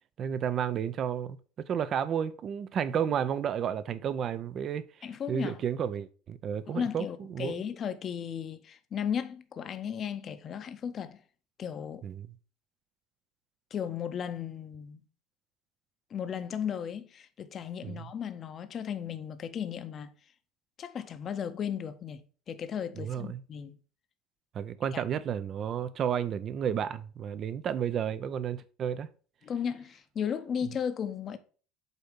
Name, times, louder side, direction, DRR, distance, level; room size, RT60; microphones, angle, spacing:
voice 1, 0.2-4.8 5.3-7.6 12.0-12.3 17.8-18.1 23.0-23.4 24.5-29.1, right 8 dB, 40° right, 0.5 m, -32 dB
voice 2, 5.0-5.6 6.7-11.2 11.6-12.0 13.7-15.0 16.1-20.1 20.8-22.2 22.5-23.8 24.9-25.0 29.4-31.4, left 8 dB, 40° left, 0.7 m, -35 dB
8.1 x 2.8 x 5.0 m
supercardioid pair, 115°, 0 cm